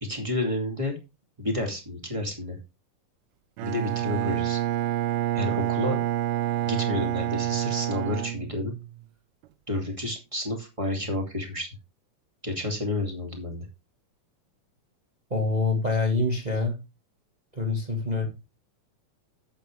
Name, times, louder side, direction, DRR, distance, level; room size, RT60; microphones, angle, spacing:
voice 1, 0.0-1.0 1.4-2.6 3.6-4.6 5.3-6.0 6.6-8.7 9.7-11.7 12.4-13.7, left 2 dB, 10° right, 2 dB, 1.9 m, -30 dB
Bowed string instrument, 3.6-9.1, right 13 dB, 85° right, 2.2 m, -28 dB
voice 2, 15.3-16.8 17.5-18.3, left 3 dB, 35° right, 2 dB, 0.6 m, -25 dB
8.9 x 8.6 x 3.4 m, 0.26 s
omnidirectional pair, 3.8 m